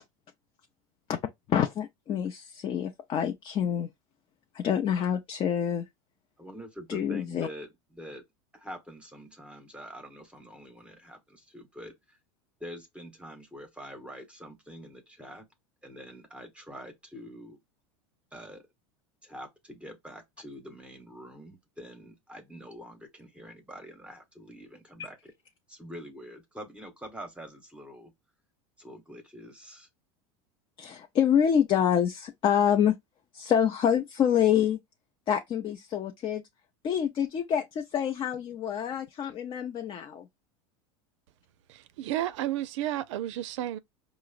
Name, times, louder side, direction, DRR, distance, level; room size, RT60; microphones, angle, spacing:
voice 1, 1.5-3.9 4.5-5.8 6.9-7.5 30.8-33.0 33.3-34.8 35.3-36.4 36.8-40.3, left 9 dB, 35° left, 0.5 m, -26 dB
voice 2, 6.4-8.2 8.5-12.2 12.6-15.5 15.8-17.6 18.3-18.6 19.2-25.3 25.7-28.1 28.8-29.9, equal, 5° right, 0.9 m, -45 dB
voice 3, 41.7-43.8, right 13 dB, 75° right, 0.5 m, -32 dB
4.6 x 2.0 x 2.3 m
supercardioid pair, 115°, 16 cm